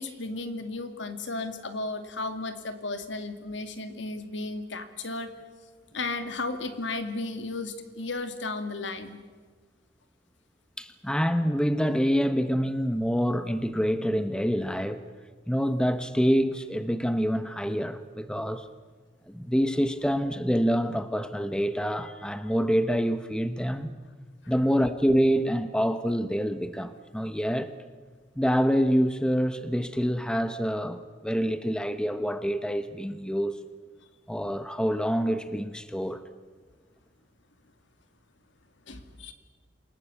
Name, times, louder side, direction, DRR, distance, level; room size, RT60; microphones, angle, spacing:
voice 1, 0.0-5.3 5.9-9.2 38.9-39.3, left 3 dB, 70° left, 2.2 m, -34 dB
voice 2, 10.8-15.0 15.5-18.7 19.3-23.9 24.5-27.7 28.4-33.6 34.3-36.2, equal, 5° left, 0.9 m, -26 dB
28.0 x 18.5 x 8.4 m
head